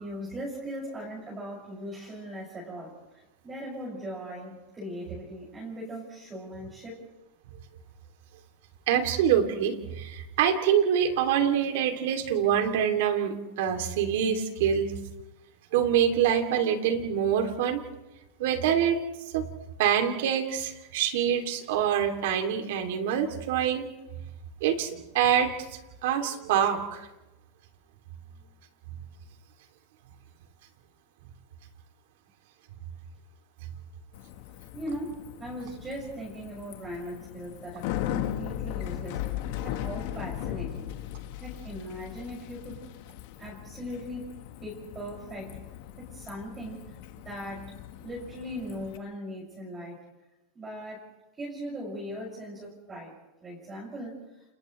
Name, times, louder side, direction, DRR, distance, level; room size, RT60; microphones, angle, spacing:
voice 1, 0.0-7.0 34.7-40.9 41.4-42.8 43.4-44.3 44.6-45.6 45.9-46.8 47.2-50.1 50.5-51.0 51.4-53.1 53.4-54.2, equal, 20° right, -4 dB, 6.6 m, -39 dB
voice 2, 8.9-14.9 15.7-17.8 18.4-19.0 19.3-19.5 19.8-23.9 24.6-25.5 26.0-27.1, right 9 dB, 70° right, 5 dB, 2.9 m, -25 dB
Bicycle, 34.1-49.0, left 12 dB, 60° left, 1.5 m, -38 dB
29.5 x 29.0 x 3.3 m, 1.0 s
supercardioid pair, 150°, 0 cm